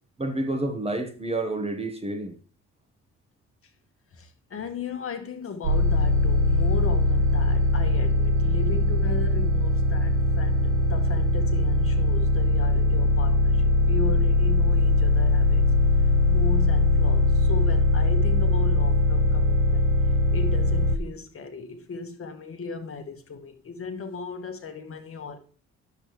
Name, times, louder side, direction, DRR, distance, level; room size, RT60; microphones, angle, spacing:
voice 1, 0.2-2.3, right 2 dB, 20° right, 1.2 m, -29 dB
voice 2, 4.1-15.7 16.3-19.9 20.3-25.4, left 4 dB, 45° left, 1.3 m, -36 dB
sound 1, 5.6-21.0, left 2 dB, 85° right, 0.8 m, -21 dB
9.7 x 7.1 x 3.1 m
cardioid pair, 90°, 30 cm